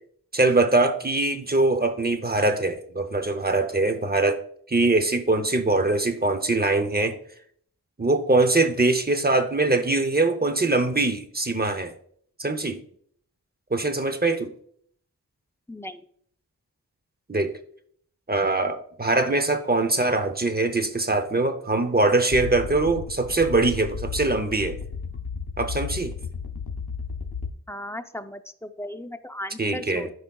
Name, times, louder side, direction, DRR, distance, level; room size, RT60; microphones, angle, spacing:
voice 1, 0.3-4.4 4.7-7.2 8.0-11.9 12.4-12.8 13.7-14.5 17.3-17.5 18.3-24.8 25.6-26.2 29.6-30.1, right 2 dB, 25° right, 9 dB, 0.7 m, -22 dB
voice 2, 15.7-16.1 27.7-30.1, left 1 dB, 5° left, 8 dB, 0.5 m, -36 dB
sound 1, 22.3-27.5, left 5 dB, 70° left, 0.7 m, -33 dB
12.5 x 5.1 x 2.3 m, 0.62 s
wide cardioid pair, 60°, 38 cm